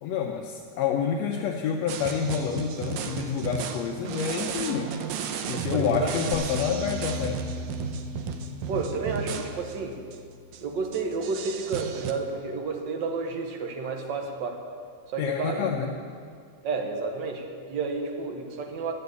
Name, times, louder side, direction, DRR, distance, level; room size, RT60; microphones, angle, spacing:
voice 1, 0.0-4.9 5.5-7.4 15.2-15.9, left 7 dB, 70° left, 1 dB, 1.7 m, -28 dB
sound 1, 1.9-9.8 10.1-10.2 10.5-10.6 10.9-12.1, right 6 dB, 75° right, 1.9 m, -34 dB
voice 2, 5.5-6.2 8.7-10.0 10.6-14.6 15.1-15.7 16.6-18.9, right 4 dB, 60° right, 3 dB, 1.2 m, -31 dB
sound 2, 6.3-11.5, left 2 dB, 50° left, 2.0 m, -39 dB
12.5 x 7.8 x 8.2 m, 2.2 s
omnidirectional pair, 3.5 m